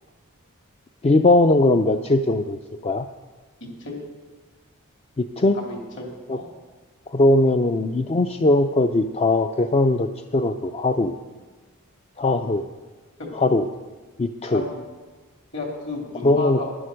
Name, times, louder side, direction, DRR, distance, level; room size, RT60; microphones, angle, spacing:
voice 1, 1.0-3.0 5.2-5.6 6.3-6.4 7.1-11.1 12.2-12.6 13.4-13.7 14.2-14.6 16.2-16.6, left 2 dB, 30° left, 8 dB, 0.4 m, -20 dB
voice 2, 3.6-4.0 5.5-6.5 8.3-8.5 13.2-13.3 14.4-14.8 15.5-16.7, left 3 dB, 55° left, 0 dB, 2.9 m, -33 dB
11.0 x 10.5 x 6.4 m, 1.3 s
head